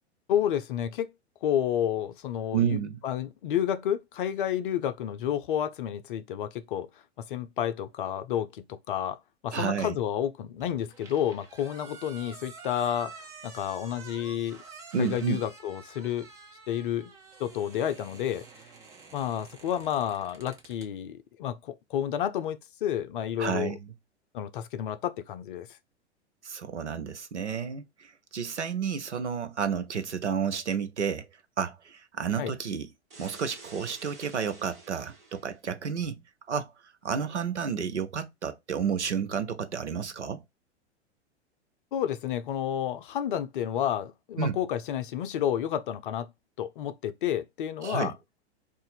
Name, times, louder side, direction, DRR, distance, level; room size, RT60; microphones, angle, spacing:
voice 1, 0.3-1.1 1.4-2.8 3.0-6.9 7.2-9.2 9.4-13.1 13.4-14.6 15.0-16.3 16.7-17.1 17.4-18.5 19.1-23.8 24.3-25.7 32.4-32.5 41.9-46.3 46.6-48.1, left 10 dB, 50° left, 0.5 m, -30 dB
voice 2, 2.5-3.0 9.5-10.0 14.9-15.4 23.4-23.9 26.4-31.3 31.6-32.9 33.2-36.2 36.5-40.4 44.4-44.6 47.8-48.1, right 7 dB, 85° right, 0.6 m, -31 dB
sound 1, 10.6-20.9, right 4 dB, 10° right, 0.3 m, -49 dB
sound 2, 33.1-35.6, right 3 dB, 55° right, 1.5 m, -49 dB
2.5 x 2.5 x 4.0 m
figure-of-eight pair, 95°, 34 cm